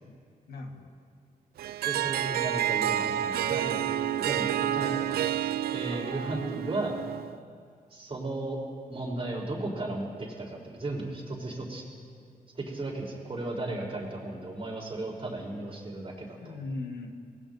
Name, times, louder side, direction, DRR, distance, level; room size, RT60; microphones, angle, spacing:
voice 1, 0.5-0.9 5.9-6.5 16.4-17.1, left 3 dB, 90° left, 2 dB, 1.6 m, -40 dB
Harp, 1.6-7.4, right 11 dB, 90° right, 0.4 m, -29 dB
voice 2, 1.8-6.9 7.9-8.6 8.9-11.8 12.6-16.4, right 2 dB, 35° right, -2 dB, 3.8 m, -35 dB
25.5 x 18.5 x 2.7 m, 2.1 s
cardioid pair, 80°, 16 cm